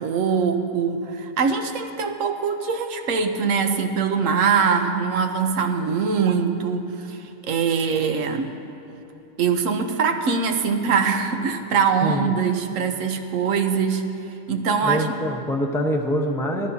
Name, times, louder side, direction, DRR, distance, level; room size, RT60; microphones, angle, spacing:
voice 1, 0.0-8.6 9.4-14.1 14.5-15.1, right 6 dB, 80° right, 6 dB, 1.2 m, -23 dB
voice 2, 12.0-12.3 14.8-16.7, equal, 5° left, 1 dB, 0.7 m, -24 dB
19.0 x 13.5 x 2.7 m, 2.8 s
omnidirectional pair, 1.3 m